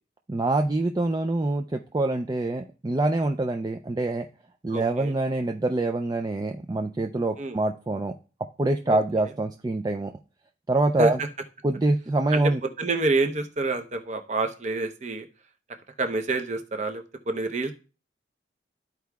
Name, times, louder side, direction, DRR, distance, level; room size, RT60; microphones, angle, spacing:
voice 1, 0.3-4.3 4.6-8.1 8.6-10.1 10.7-11.2 11.6-12.6, right 2 dB, 20° right, 6 dB, 0.3 m, -25 dB
voice 2, 4.7-5.1 7.4-7.6 8.9-9.0 11.0-11.3 12.3-12.4 12.8-15.3 16.0-17.7, right 2 dB, 35° right, 6 dB, 0.7 m, -27 dB
13.5 x 4.7 x 2.3 m, 0.35 s
head